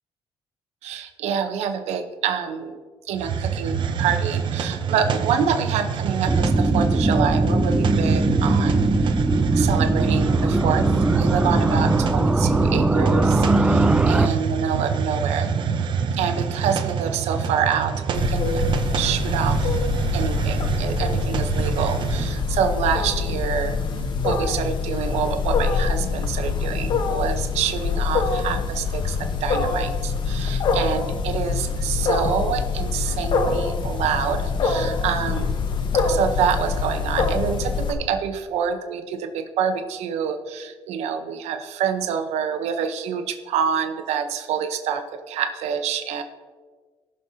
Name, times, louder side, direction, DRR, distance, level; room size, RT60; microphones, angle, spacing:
voice 1, 0.8-2.8 3.1-9.2 9.5-15.5 16.1-18.6 19.0-19.8 20.1-23.8 24.2-35.6 36.0-46.2, right 7 dB, 80° right, 7 dB, 0.9 m, -27 dB
Hiss, 3.1-22.4, right 6 dB, 45° right, 0.7 m, -26 dB
sound 1, 6.3-14.3, right 2 dB, 10° right, 0.4 m, -20 dB
Wild animals, 18.1-37.9, left 4 dB, 45° left, 1.1 m, -25 dB
19.0 x 6.4 x 2.8 m, 1.5 s
cardioid pair, 135°, 11 cm